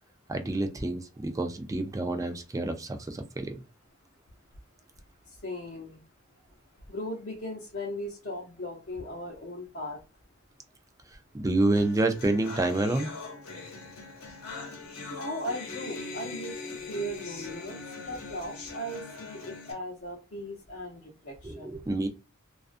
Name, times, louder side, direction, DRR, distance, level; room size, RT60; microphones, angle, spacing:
voice 1, 0.3-3.5 11.3-13.1 21.4-22.1, right 2 dB, 15° right, 0.4 m, -28 dB
voice 2, 5.4-6.0 6.9-10.0 15.1-16.6 16.9-17.8 18.1-21.7, equal, 50° left, 0.7 m, -37 dB
sound 1, 11.7-19.7, left 3 dB, 85° left, 0.9 m, -41 dB
2.4 x 2.3 x 2.4 m
head